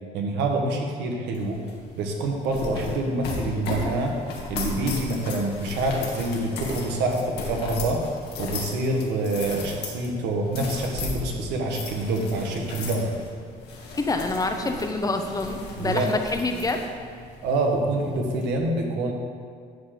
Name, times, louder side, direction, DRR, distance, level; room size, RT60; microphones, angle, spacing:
voice 1, 0.1-1.6 1.9-4.2 4.5-8.1 8.4-13.2 15.8-16.1 17.4-19.1, right 2 dB, 90° right, 1 dB, 1.5 m, -26 dB
sound 1, 1.3-18.5, left 3 dB, 80° left, 1.8 m, -36 dB
voice 2, 14.0-16.9, left 2 dB, 20° left, 5 dB, 0.8 m, -26 dB
11.0 x 4.0 x 6.8 m, 2.1 s
cardioid pair, 110°, 17 cm